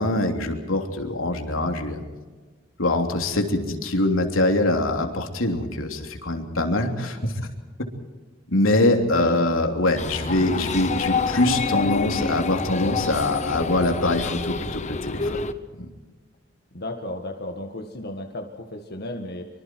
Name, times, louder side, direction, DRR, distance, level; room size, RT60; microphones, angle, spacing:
voice 1, 0.0-2.0 2.8-7.3 8.5-15.4, left 2 dB, 90° left, 3 dB, 3.2 m, -23 dB
voice 2, 9.1-10.0 16.7-19.5, left 1 dB, 55° left, 3 dB, 1.8 m, -34 dB
sound 1, 10.0-15.5, left 4 dB, 35° left, 1.1 m, -28 dB
25.0 x 25.0 x 4.7 m, 1.4 s
head